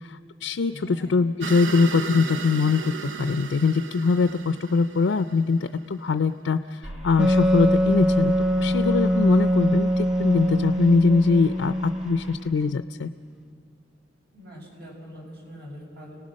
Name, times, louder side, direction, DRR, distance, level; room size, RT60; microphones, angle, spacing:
voice 1, 0.0-8.3 8.6-13.1, left 4 dB, 80° left, 11 dB, 0.5 m, -22 dB
voice 2, 0.7-1.2 14.3-16.2, equal, 60° right, -2 dB, 6.6 m, -43 dB
sound 1, 1.4-6.0, right 6 dB, 85° right, 0.8 m, -35 dB
sound 2, 6.8-12.4, equal, 35° right, 3.8 m, -41 dB
Wind instrument woodwind instrument, 7.2-12.6, equal, 5° right, 0.5 m, -23 dB
29.5 x 19.0 x 6.4 m, 2.2 s
head